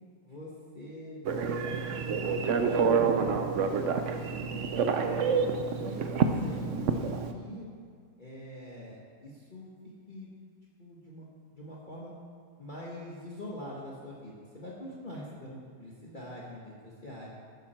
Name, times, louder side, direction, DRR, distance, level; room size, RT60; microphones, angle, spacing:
voice 1, 0.2-2.2 2.6-3.3 3.6-5.1 5.7-7.7 8.2-10.3 10.8-11.2 11.5-12.1 12.6-17.3, left 1 dB, 30° left, -6 dB, 1.6 m, -44 dB
Telephone, 1.3-7.3, right 5 dB, 55° right, 1.0 m, -28 dB
12.5 x 9.7 x 4.4 m, 2.1 s
omnidirectional pair, 1.7 m